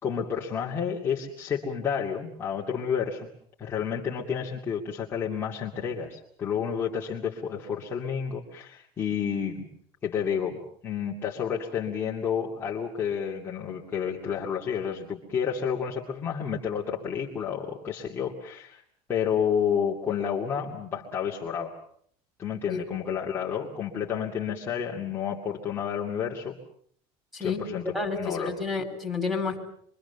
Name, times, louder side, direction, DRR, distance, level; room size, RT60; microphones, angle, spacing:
voice 1, 0.0-3.3 3.6-9.6 10.0-18.8 19.1-21.7 22.4-26.6 27.4-27.8 28.2-28.5, left 7 dB, 20° left, -4 dB, 2.4 m, -30 dB
voice 2, 27.9-29.6, left 4 dB, 5° right, 8 dB, 4.6 m, -30 dB
26.5 x 24.0 x 6.9 m, 0.63 s
cardioid pair, 175°, 12 cm